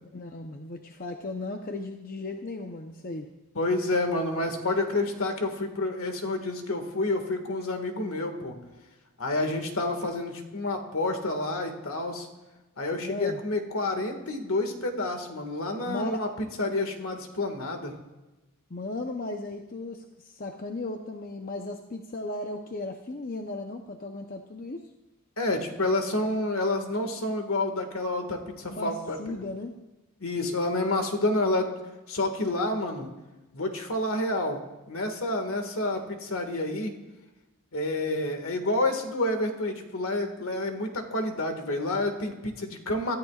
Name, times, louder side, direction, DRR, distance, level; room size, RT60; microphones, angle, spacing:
voice 1, 0.1-3.3 13.0-13.4 15.8-16.2 18.7-24.8 28.7-29.7, left 2 dB, 40° left, 3 dB, 0.8 m, -36 dB
voice 2, 3.6-8.5 9.2-12.3 12.8-18.0 25.4-29.2 30.2-31.7 32.1-33.1 33.5-34.6 34.9-36.9 37.7-43.1, left 2 dB, 65° left, 5 dB, 1.9 m, -29 dB
26.0 x 13.5 x 2.5 m, 1.1 s
head